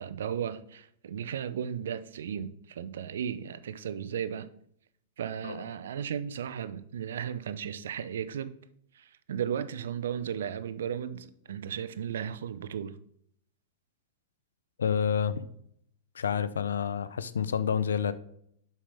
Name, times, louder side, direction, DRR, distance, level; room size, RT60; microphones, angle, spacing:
voice 1, 0.0-4.5 5.2-8.5 8.9-13.0, right 8 dB, 75° right, 0.5 m, -35 dB
voice 2, 14.8-15.5 16.2-18.1, left 7 dB, 85° left, 0.5 m, -29 dB
7.1 x 5.6 x 3.5 m
hypercardioid pair, 115°, 0 cm